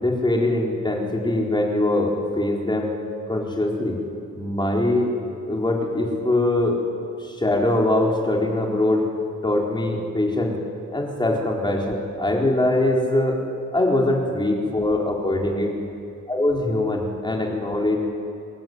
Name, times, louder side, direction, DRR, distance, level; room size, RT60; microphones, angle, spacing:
voice 1, 0.0-2.9 3.3-4.0 4.3-5.1 5.4-6.8 7.2-9.1 9.4-10.5 10.9-13.4 13.7-15.7 16.3-18.0, left 1 dB, 15° left, -1 dB, 4.2 m, -22 dB
26.0 x 23.5 x 9.7 m, 2.5 s
wide cardioid pair, 155°, 31 cm